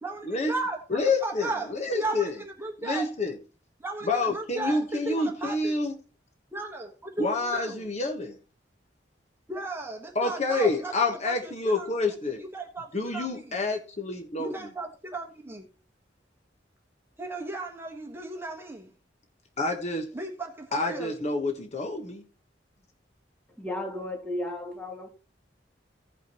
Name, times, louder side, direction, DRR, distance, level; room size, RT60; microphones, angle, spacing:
voice 1, 0.0-3.1 3.8-5.8 6.5-7.9 9.5-13.6 14.4-15.6 17.2-18.9 20.1-21.2, right 2 dB, 15° right, 1.4 m, -36 dB
voice 2, 0.9-1.5 1.9-2.2 2.8-3.3 4.1-5.9 7.2-8.3 10.2-12.4 12.9-14.5 19.6-20.1 20.7-22.2, left 3 dB, 40° left, 1.3 m, -28 dB
voice 3, 23.6-25.1, left 1 dB, 5° left, 2.7 m, -34 dB
16.5 x 5.8 x 3.1 m
head